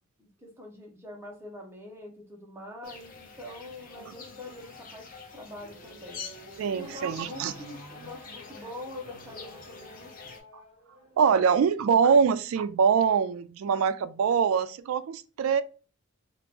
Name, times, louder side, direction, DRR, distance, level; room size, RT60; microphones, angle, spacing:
voice 1, 0.2-5.0 5.3-6.2 6.8-10.2, left 1 dB, 10° right, 0.9 m, -44 dB
sound 1, 2.8-10.4, left 4 dB, 40° left, 0.6 m, -46 dB
sound 2, 5.5-11.2, left 2 dB, 90° left, 0.9 m, -53 dB
voice 2, 6.6-7.5 11.2-15.6, right 6 dB, 75° right, 0.3 m, -24 dB
2.9 x 2.5 x 3.4 m
head